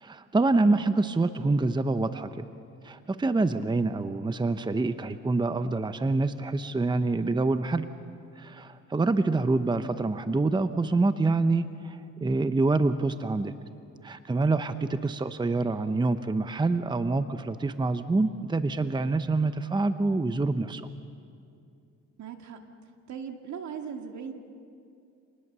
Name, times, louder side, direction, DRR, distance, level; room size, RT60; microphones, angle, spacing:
voice 1, 0.0-2.5 2.8-7.9 8.4-13.5 14.0-20.9, right 3 dB, 15° right, 10 dB, 0.8 m, -26 dB
voice 2, 22.2-22.6 23.1-24.3, right 7 dB, 70° right, 4 dB, 2.2 m, -38 dB
27.5 x 19.5 x 6.8 m, 2.5 s
cardioid pair, 90°, 30 cm